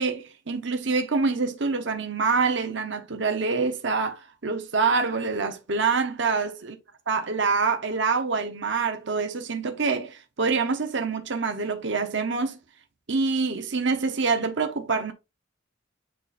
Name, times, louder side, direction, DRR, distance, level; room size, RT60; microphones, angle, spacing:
voice 1, 0.0-6.8 7.1-12.6 13.1-15.1, right 4 dB, 65° right, 1.0 m, -26 dB
8.9 x 4.1 x 2.6 m
head